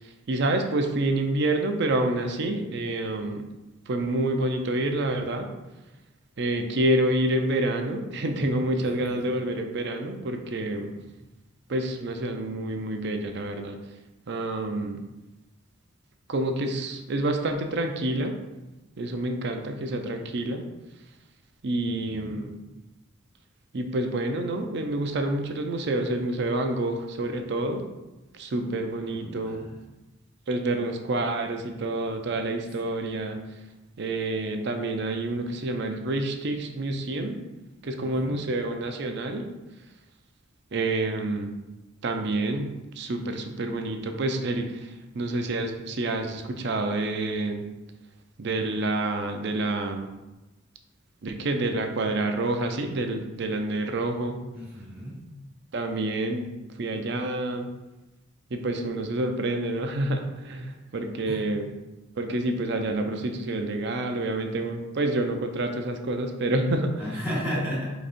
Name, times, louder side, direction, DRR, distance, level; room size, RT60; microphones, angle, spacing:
voice 1, 0.3-3.4 3.9-5.5 6.4-10.9 11.7-13.8 14.3-15.0 16.3-18.4 19.0-20.6 21.6-22.5 23.7-27.8 28.3-29.6 30.5-33.4 34.0-37.4 37.8-39.5 40.7-41.5 42.0-47.7 48.4-50.1 51.2-54.4 55.7-56.5 56.8-57.7 58.5-61.7 62.2-67.2, right 2 dB, 60° right, 5 dB, 0.5 m, -28 dB
voice 2, 22.0-22.4 29.1-29.8 38.0-38.5 54.5-55.2 61.2-61.4 67.0-67.9, equal, 10° right, -7 dB, 1.5 m, -34 dB
4.9 x 3.9 x 2.5 m, 1.0 s
head